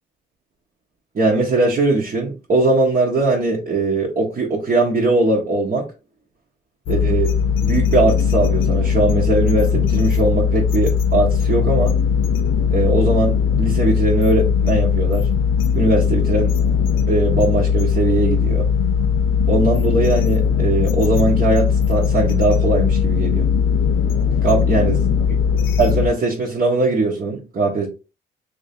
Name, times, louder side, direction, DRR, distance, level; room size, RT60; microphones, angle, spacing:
voice 1, 1.1-5.9 6.9-7.3 7.6-11.9 12.7-15.3 15.7-16.5 17.1-18.7 19.5-23.5 24.4-25.0 25.8-27.9, right 2 dB, 45° right, -4 dB, 1.1 m, -20 dB
sound 1, 6.9-26.1, left 7 dB, 80° left, 0.5 m, -19 dB
3.4 x 2.6 x 3.5 m, 0.30 s
cardioid pair, 90°, 20 cm